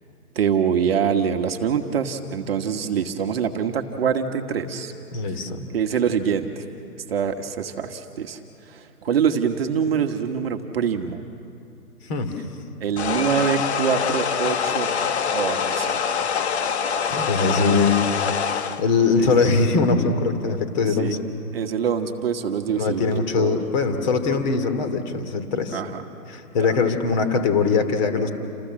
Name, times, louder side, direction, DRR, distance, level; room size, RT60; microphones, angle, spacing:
voice 1, 0.3-4.9 5.7-6.6 7.1-8.4 8.7-11.2 12.8-14.9 15.3-16.0 19.2-19.3 21.0-21.2 21.5-23.6 25.7-26.0, right 7 dB, 40° right, 6 dB, 1.4 m, -24 dB
voice 2, 5.1-5.7 12.1-12.3 17.1-18.0 18.8-21.2 22.7-25.8 26.3-28.3, left 4 dB, 30° left, 8 dB, 2.6 m, -21 dB
sound 1, 13.0-18.8, left 6 dB, 45° left, 1.3 m, -24 dB
29.5 x 27.0 x 7.6 m, 2.6 s
hypercardioid pair, 150°, 47 cm